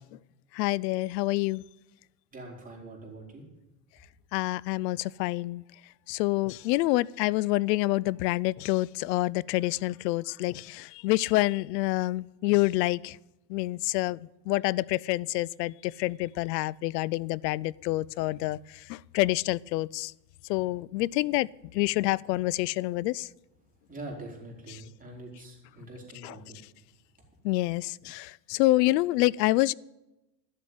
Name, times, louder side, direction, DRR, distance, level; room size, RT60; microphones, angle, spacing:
voice 1, 0.5-1.6 4.3-5.6 6.1-13.2 13.5-14.2 14.5-20.1 20.5-23.3 26.2-26.3 27.4-29.7, left 19 dB, 85° left, 0.5 m, -27 dB
voice 2, 2.3-3.4 23.9-26.6, right 2 dB, 15° right, 4.5 m, -44 dB
13.0 x 7.5 x 9.4 m
supercardioid pair, 125°, 48 cm